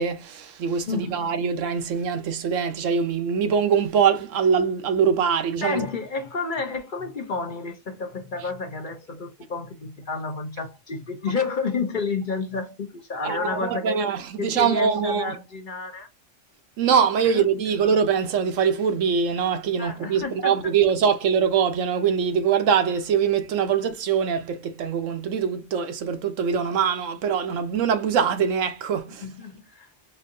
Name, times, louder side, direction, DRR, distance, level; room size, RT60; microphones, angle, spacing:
voice 1, 0.0-5.9 13.2-15.4 16.8-29.2, right 7 dB, 85° right, 1.1 m, -23 dB
voice 2, 0.9-1.2 5.6-14.0 14.4-16.1 17.3-17.5 19.8-20.7 29.2-29.9, left 4 dB, 45° left, 0.8 m, -30 dB
4.4 x 2.7 x 2.6 m
omnidirectional pair, 1.3 m